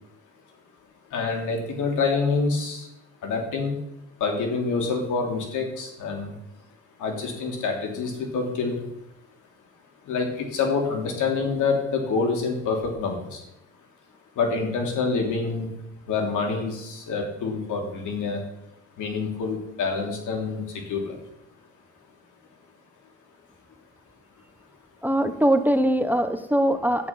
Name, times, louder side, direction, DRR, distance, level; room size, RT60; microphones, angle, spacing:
voice 1, 1.1-2.9 3.2-3.8 4.2-6.3 7.0-8.8 10.0-13.4 14.3-15.7 16.1-18.4 19.0-21.2, left 4 dB, 85° left, 2 dB, 3.1 m, -27 dB
voice 2, 25.0-27.1, right 1 dB, 5° right, 9 dB, 1.0 m, -22 dB
11.0 x 9.9 x 5.9 m, 0.85 s
cardioid pair, 90°, 30 cm